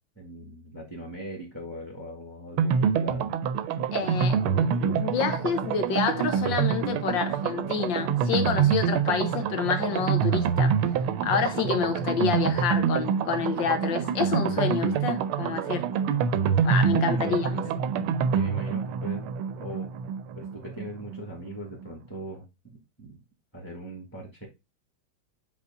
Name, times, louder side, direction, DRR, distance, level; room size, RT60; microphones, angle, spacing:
voice 1, 0.2-3.3 16.9-17.4 18.3-22.4 23.0-23.2 23.5-24.5, right 1 dB, 5° left, 1.8 m, -40 dB
sound 1, 2.6-21.2 21.5-21.6 21.8-21.9, right 7 dB, 80° right, 1.5 m, -26 dB
voice 2, 3.9-10.7 11.2-15.9 16.6-17.6, left 6 dB, 65° left, 1.7 m, -28 dB
7.2 x 4.1 x 3.7 m
omnidirectional pair, 2.4 m